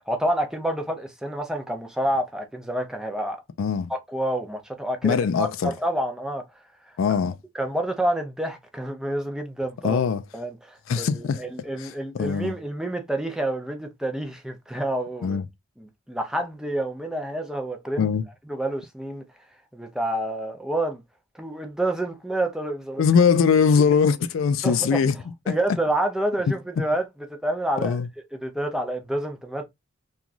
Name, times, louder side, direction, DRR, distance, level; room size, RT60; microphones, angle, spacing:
voice 1, 0.0-3.4 3.9-6.4 6.8-7.0 7.5-10.0 10.3-15.4 15.8-18.1 18.5-19.2 19.7-21.0 21.4-23.0 23.8-23.9 24.6-25.1 25.5-27.0 27.4-28.0 28.3-29.6, right 1 dB, 5° right, 0.4 m, -28 dB
voice 2, 3.6-3.9 5.0-5.7 7.0-7.4 9.8-10.2 10.9-11.4 11.8-12.5 15.2-15.5 18.0-18.2 23.0-25.2 25.5-25.6 27.8-28.1, left 6 dB, 65° left, 0.3 m, -21 dB
3.0 x 2.3 x 2.4 m
head